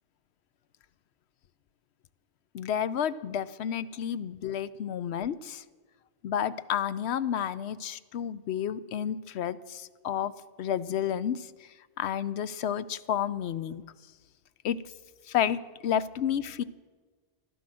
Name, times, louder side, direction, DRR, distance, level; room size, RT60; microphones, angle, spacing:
voice 1, 2.5-5.6 6.2-10.3 10.6-11.5 12.0-13.8 14.6-14.8 15.3-16.6, left 9 dB, 85° left, 16 dB, 0.9 m, -31 dB
15.5 x 12.0 x 7.6 m, 1.4 s
omnidirectional pair, 1.1 m